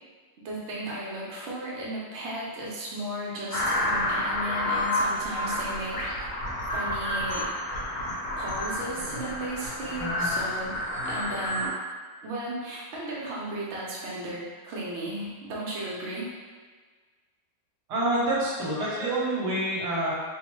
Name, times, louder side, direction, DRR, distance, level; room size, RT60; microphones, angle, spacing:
voice 1, 0.4-6.3 6.7-7.5 8.4-11.7 12.2-16.3 18.7-19.1, right 1 dB, 90° right, -5 dB, 0.5 m, -35 dB
sound 1, 3.5-11.7, left 1 dB, 65° left, 1.0 m, -29 dB
voice 2, 10.0-10.3 17.9-20.1, right 1 dB, 65° right, -6 dB, 1.2 m, -27 dB
3.0 x 2.0 x 3.0 m, 1.5 s
omnidirectional pair, 2.0 m